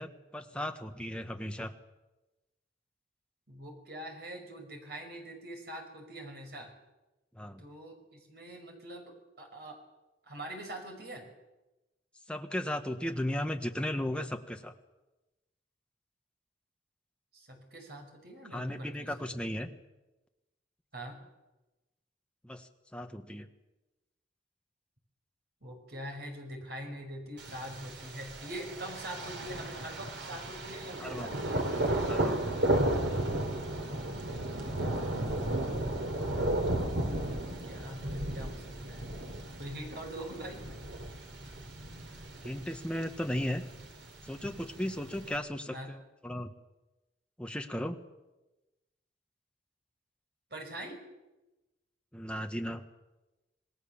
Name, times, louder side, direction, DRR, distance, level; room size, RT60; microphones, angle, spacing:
voice 1, 0.0-1.7 7.3-7.6 12.3-14.7 18.5-19.7 22.4-23.5 31.0-31.3 32.1-32.4 42.4-43.6 44.2-46.5 47.4-48.0 52.1-52.8, left 1 dB, 5° left, 5 dB, 1.3 m, -36 dB
voice 2, 3.5-6.7 7.6-9.8 10.3-11.3 17.3-19.5 20.9-21.2 25.6-31.6 35.2-35.6 36.9-37.4 37.7-39.1 39.6-40.6 45.7-46.0 50.5-51.0, right 1 dB, 55° right, 3 dB, 5.7 m, -44 dB
Thunder, 27.4-45.4, right 1 dB, 80° right, 3.1 m, -34 dB
27.0 x 19.0 x 7.2 m, 1.1 s
head